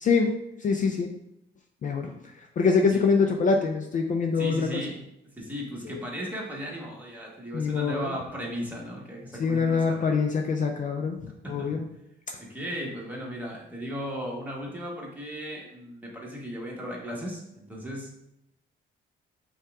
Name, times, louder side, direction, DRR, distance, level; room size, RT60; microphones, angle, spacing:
voice 1, 0.0-1.1 1.8-4.7 5.8-6.0 7.5-8.2 9.4-11.2 11.5-11.8, left 5 dB, 40° left, 3 dB, 0.4 m, -25 dB
voice 2, 4.4-5.0 5.4-10.1 11.4-11.8 12.4-18.1, equal, 10° right, -3 dB, 1.3 m, -36 dB
5.5 x 2.3 x 3.5 m, 0.84 s
cardioid pair, 90°, 20 cm